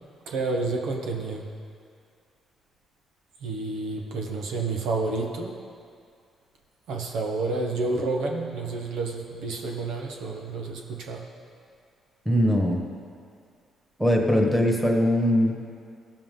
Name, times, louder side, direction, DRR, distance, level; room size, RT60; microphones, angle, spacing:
voice 1, 0.3-1.5 3.4-5.7 6.9-11.3, right 3 dB, 85° right, 1 dB, 1.2 m, -30 dB
voice 2, 12.2-12.8 14.0-15.5, equal, 10° right, 0 dB, 1.5 m, -21 dB
15.5 x 7.2 x 3.8 m, 2.3 s
cardioid pair, 90°, 0 cm